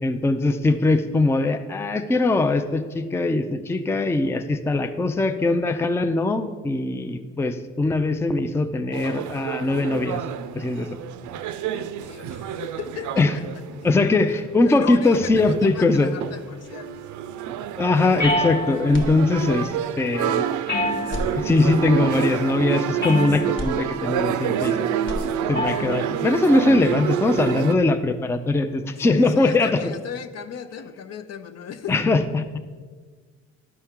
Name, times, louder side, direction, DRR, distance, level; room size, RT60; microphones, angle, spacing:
voice 1, 0.0-10.2 10.6-11.0 13.2-13.4 13.8-16.1 17.8-20.4 21.3-24.9 25.5-29.9 31.9-32.6, left 2 dB, 10° left, 9 dB, 0.4 m, -21 dB
sound 1, 8.9-14.6 15.0-27.8, right 9 dB, 75° right, 0.5 m, -28 dB
voice 2, 11.6-13.4 13.8-14.0 14.7-17.0 29.0-32.0, left 7 dB, 60° left, 10 dB, 0.6 m, -36 dB
sound 2, 18.2-19.0 20.7-21.5 23.0-23.7 25.5-26.0, left 1 dB, 85° left, 2.2 m, -26 dB
sound 3, 18.9-19.8 20.3-20.4 21.0-22.1 23.6-24.7 24.9-25.9, left 1 dB, 40° left, 1.2 m, -35 dB
12.0 x 4.4 x 3.6 m, 1.5 s
cardioid pair, 90°, 30 cm